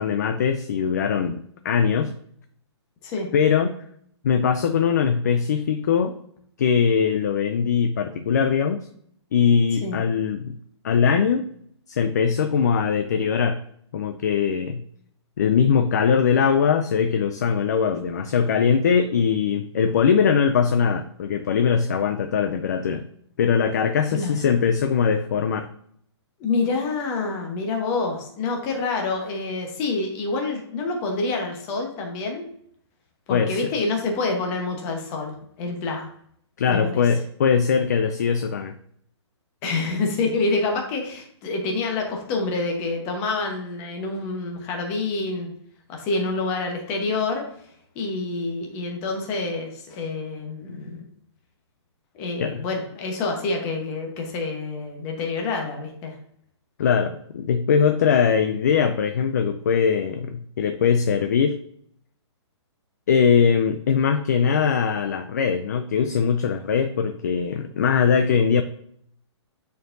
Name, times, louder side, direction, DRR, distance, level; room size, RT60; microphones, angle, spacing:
voice 1, 0.0-2.1 3.3-3.7 4.2-6.2 6.6-8.9 9.3-10.6 10.8-11.4 11.9-13.6 13.9-14.8 15.4-23.1 23.4-25.7 33.3-33.6 36.6-38.8 52.4-52.6 56.8-61.6 63.1-68.6, left 6 dB, 35° left, 8 dB, 0.4 m, -21 dB
voice 2, 26.4-32.4 33.3-36.1 36.7-37.0 39.6-45.5 45.9-47.4 47.9-51.0 52.1-56.1, left 3 dB, 20° left, 2 dB, 1.0 m, -27 dB
9.2 x 4.5 x 2.6 m, 0.68 s
hypercardioid pair, 170°, 15 cm